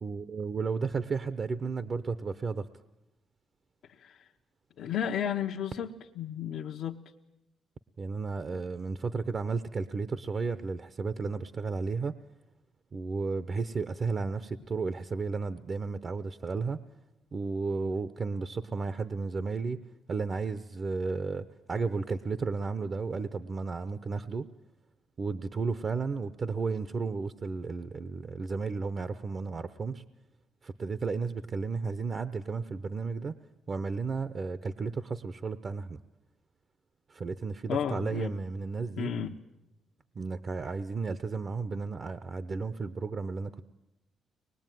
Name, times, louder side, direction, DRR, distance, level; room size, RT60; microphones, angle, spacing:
voice 1, 0.0-2.7 8.0-12.2 12.9-16.8 17.3-24.5 25.2-30.1 30.6-33.4 33.7-36.0 37.1-39.1 40.2-43.6, right 4 dB, 40° right, 13 dB, 0.8 m, -33 dB
voice 2, 3.8-4.3 4.8-7.0 37.7-38.4 39.0-39.4, left 8 dB, 70° left, 0 dB, 1.0 m, -33 dB
24.0 x 21.0 x 9.2 m, 0.93 s
cardioid pair, 90°, 0 cm